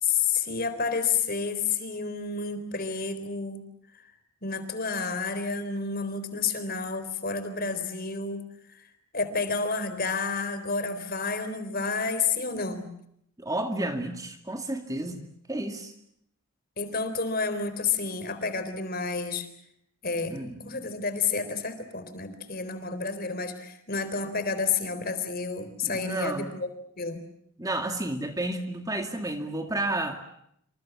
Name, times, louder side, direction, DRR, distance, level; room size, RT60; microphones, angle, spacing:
voice 1, 0.0-3.6 3.9-4.0 4.4-8.9 9.1-12.9 16.8-19.5 20.0-26.7 27.0-27.2, left 5 dB, 45° left, 11 dB, 3.8 m, -30 dB
voice 2, 13.4-15.2 15.5-15.9 20.3-20.9 25.8-26.5 27.6-30.2, right 1 dB, 15° right, 6 dB, 2.2 m, -31 dB
28.0 x 26.5 x 7.2 m, 0.73 s
head